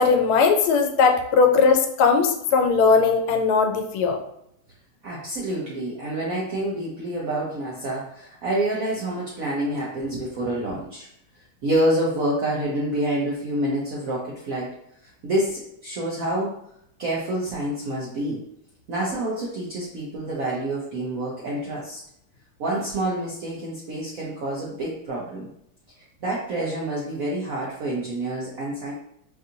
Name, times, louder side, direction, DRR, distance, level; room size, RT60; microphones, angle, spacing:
voice 1, 0.0-4.2, left 5 dB, 90° left, 5 dB, 1.5 m, -19 dB
voice 2, 5.0-11.1 11.6-14.7 15.2-16.5 17.0-18.4 18.9-22.0 22.6-25.5 26.2-28.9, right 1 dB, 70° right, -4 dB, 0.8 m, -27 dB
5.3 x 2.6 x 2.6 m, 0.75 s
omnidirectional pair, 2.3 m